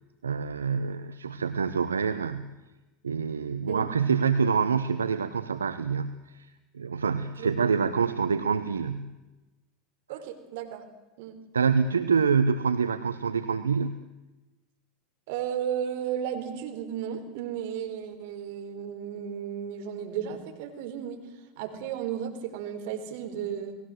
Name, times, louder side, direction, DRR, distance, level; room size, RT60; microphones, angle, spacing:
voice 1, 0.2-2.5 3.0-9.1 11.5-14.0, right 5 dB, 90° right, 11 dB, 0.9 m, -26 dB
voice 2, 10.1-10.8 11.2-11.4 15.3-21.2 21.6-23.8, right 9 dB, 65° right, 7 dB, 4.3 m, -34 dB
30.0 x 19.5 x 7.9 m, 1.1 s
hypercardioid pair, 85°, 0 cm